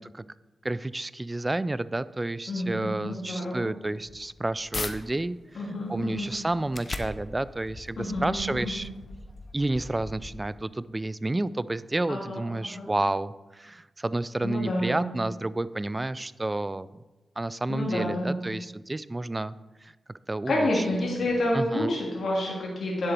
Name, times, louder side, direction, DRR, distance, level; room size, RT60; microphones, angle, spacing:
voice 1, 0.6-5.4 5.9-8.9 9.5-17.0 17.4-19.5 19.8-19.9 20.3-20.8 21.5-21.9, right 2 dB, 20° right, 17 dB, 0.4 m, -30 dB
voice 2, 2.5-3.7 5.5-6.3 8.0-8.8 12.1-12.9 14.4-15.0 17.7-18.3 20.5-23.1, left 1 dB, 65° left, -4 dB, 2.8 m, -29 dB
sound 1, 4.0-4.9 5.5-10.7, left 2 dB, 40° left, 0.9 m, -40 dB
10.0 x 7.6 x 4.4 m, 1.1 s
cardioid pair, 80°, 0 cm